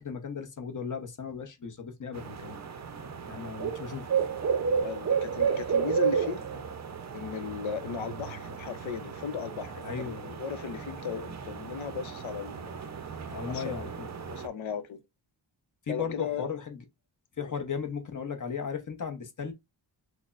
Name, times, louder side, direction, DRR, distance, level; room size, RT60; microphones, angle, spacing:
voice 1, 0.0-2.6 3.3-4.1 9.8-10.3 13.3-14.1 15.9-16.8 17.4-19.5, left 6 dB, 40° left, 0.8 m, -36 dB
sound 1, 2.1-14.5, right 6 dB, 35° right, 0.5 m, -33 dB
voice 2, 4.7-6.4 7.1-12.8 13.5-13.7 14.1-15.0 15.9-16.5 17.4-17.5, left 7 dB, 85° left, 0.7 m, -36 dB
6.2 x 2.1 x 2.4 m
wide cardioid pair, 115°, 46 cm